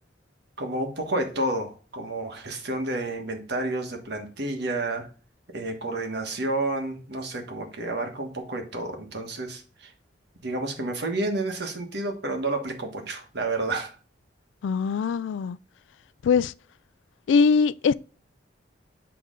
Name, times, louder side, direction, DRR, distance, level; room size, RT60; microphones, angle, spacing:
voice 1, 0.6-5.1 5.5-9.9 10.4-14.0, right 2 dB, 65° right, 1.4 m, -30 dB
voice 2, 14.6-15.6 16.2-16.5 17.3-17.9, left 5 dB, 85° left, 0.3 m, -21 dB
8.3 x 3.4 x 3.7 m
head